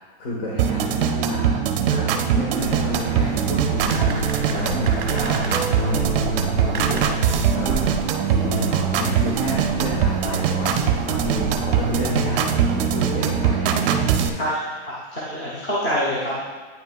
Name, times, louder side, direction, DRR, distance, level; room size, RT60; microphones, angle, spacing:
voice 1, 0.0-7.8 8.2-14.5, left 1 dB, 60° left, -5 dB, 1.4 m, -30 dB
sound 1, 0.6-14.3, right 7 dB, 55° right, 0.5 m, -22 dB
sound 2, 2.6-13.5, right 3 dB, 25° right, 0.9 m, -32 dB
voice 2, 14.4-16.4, equal, 25° left, -6 dB, 0.8 m, -26 dB
9.0 x 5.6 x 2.3 m, 1.4 s
supercardioid pair, 180°, 34 cm